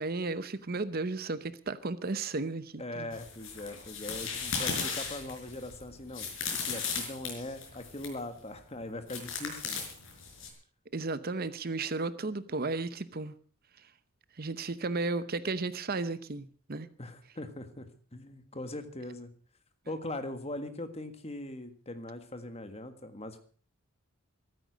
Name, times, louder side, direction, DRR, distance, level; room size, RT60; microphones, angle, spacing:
voice 1, 0.0-3.1 10.9-13.3 14.4-16.9, right 3 dB, 45° right, 14 dB, 0.8 m, -34 dB
voice 2, 2.8-9.8 17.0-17.9 18.1-19.3 19.9-23.4, left 1 dB, 30° left, 9 dB, 1.6 m, -41 dB
sound 1, 3.1-8.2 9.1-10.5, left 5 dB, 60° left, 5.3 m, -36 dB
14.5 x 13.5 x 6.3 m, 0.43 s
head